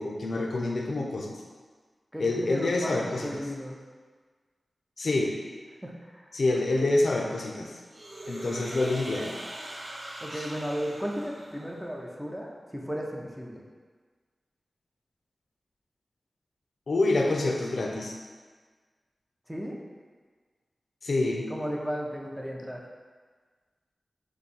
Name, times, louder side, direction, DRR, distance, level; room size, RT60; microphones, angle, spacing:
voice 1, 0.0-1.3 2.2-3.3 5.0-5.3 6.3-7.7 8.3-9.4 16.9-18.1 21.0-21.5, left 2 dB, 70° left, 0 dB, 0.5 m, -27 dB
voice 2, 2.1-3.8 5.8-6.3 6.8-7.0 10.2-13.6 19.5-19.8 21.5-22.8, equal, 5° right, -2 dB, 0.5 m, -35 dB
sound 1, 7.9-12.0, right 1 dB, 65° right, 0.7 m, -41 dB
3.9 x 2.7 x 4.2 m, 1.5 s
wide cardioid pair, 105°, 0 cm